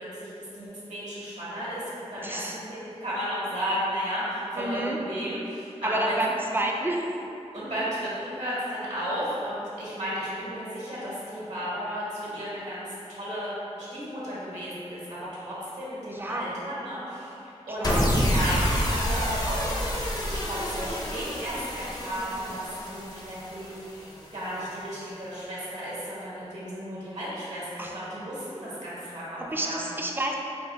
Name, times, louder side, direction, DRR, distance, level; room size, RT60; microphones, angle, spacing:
voice 1, 0.0-6.2 7.5-20.0 20.2-29.9, equal, 75° right, -9 dB, 1.4 m, -34 dB
voice 2, 2.2-2.6 4.6-5.0 5.8-7.0 16.1-16.5 17.8-18.1 27.8-27.9 29.4-30.3, right 1 dB, 15° right, 0 dB, 0.4 m, -29 dB
sound 1, 17.8-24.2, equal, 35° left, 0.5 m, -28 dB
4.9 x 2.2 x 3.4 m, 2.8 s
wide cardioid pair, 90°, 12 cm